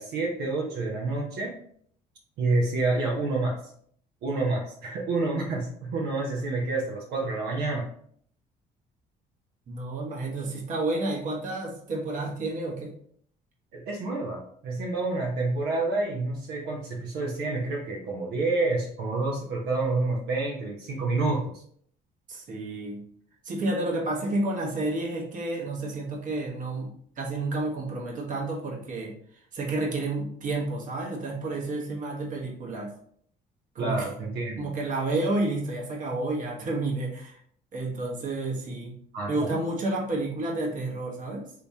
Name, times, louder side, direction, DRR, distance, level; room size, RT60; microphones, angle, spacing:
voice 1, 0.0-1.5 2.4-3.6 4.2-7.9 13.7-21.6 33.8-34.7 39.1-39.6, right 3 dB, 75° right, -2 dB, 0.7 m, -28 dB
voice 2, 9.7-12.9 22.3-23.0 23.4-29.1 29.5-32.9 33.7-34.1 34.6-37.4 37.7-38.9 39.3-41.5, right 2 dB, 50° right, -2 dB, 1.1 m, -30 dB
3.5 x 2.9 x 2.8 m, 0.62 s
cardioid pair, 110°, 17 cm